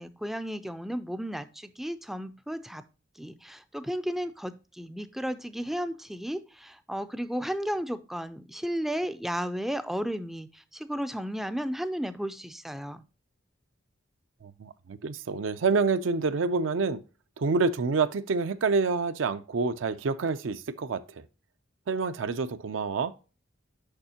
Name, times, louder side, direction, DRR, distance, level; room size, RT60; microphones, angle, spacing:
voice 1, 0.0-2.8 3.2-13.0, equal, ahead, 0.3 m, -34 dB
voice 2, 14.4-17.0 17.4-21.2 21.9-23.1, right 4 dB, 75° right, 0.4 m, -27 dB
6.7 x 5.6 x 2.7 m
head